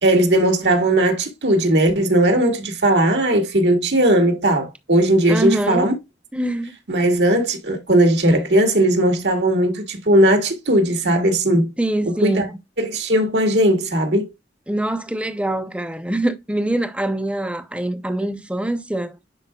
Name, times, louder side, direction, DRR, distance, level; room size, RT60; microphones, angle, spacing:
voice 1, 0.0-6.0 6.9-11.7 12.1-12.5 12.8-14.3, right 1 dB, 80° right, 2.0 m, -18 dB
voice 2, 5.3-5.9 6.3-6.7 11.8-12.6 14.7-19.1, right 1 dB, 5° right, 0.7 m, -24 dB
10.0 x 4.7 x 2.3 m
head